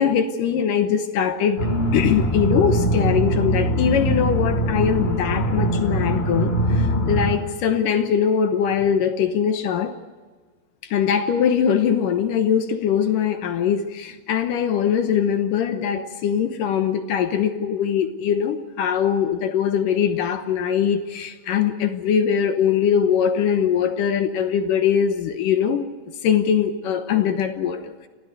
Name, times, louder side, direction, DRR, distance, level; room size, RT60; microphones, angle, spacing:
voice 1, 0.0-1.7 1.9-10.0 10.8-25.9 26.2-28.1, left 8 dB, 70° left, 8 dB, 2.4 m, -22 dB
sound 1, 1.6-7.4, right 1 dB, 20° left, 2.5 m, -22 dB
25.0 x 16.0 x 7.9 m, 1.4 s
omnidirectional pair, 4.4 m